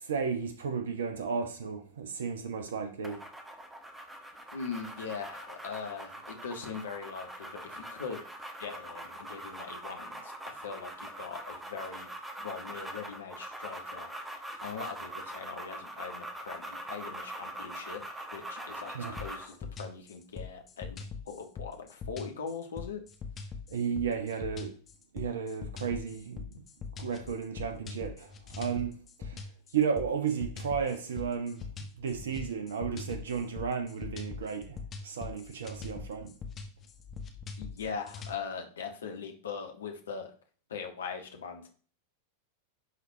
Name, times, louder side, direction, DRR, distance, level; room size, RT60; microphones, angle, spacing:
voice 1, 0.0-3.2 18.9-19.2 23.7-24.7 25.1-26.6 27.0-29.4 29.7-31.7 32.0-34.8 35.0-36.3, right 6 dB, 65° right, 1.2 m, -33 dB
sound 1, 3.0-19.5, right 1 dB, 10° right, 1.3 m, -43 dB
voice 2, 4.5-8.2 8.6-10.2 10.6-12.1 12.4-14.1 14.6-18.0 18.3-21.0 21.3-23.0 37.6-40.2 40.7-41.7, left 5 dB, 65° left, 1.4 m, -41 dB
sound 2, 19.2-38.4, left 5 dB, 25° left, 1.3 m, -42 dB
11.0 x 4.1 x 2.8 m
figure-of-eight pair, 90°, 0 cm